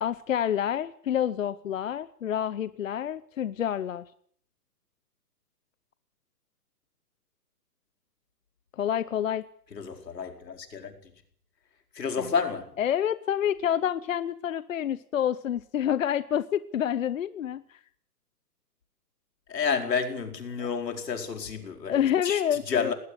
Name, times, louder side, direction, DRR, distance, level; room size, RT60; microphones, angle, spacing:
voice 1, 0.0-4.0 8.7-9.5 12.8-17.8 20.6-20.7 21.9-22.9, left 10 dB, 55° left, 0.8 m, -28 dB
voice 2, 9.7-11.1 11.9-12.7 19.5-22.9, left 6 dB, 85° left, 5.0 m, -30 dB
19.5 x 19.0 x 8.2 m
hypercardioid pair, 165°, 48 cm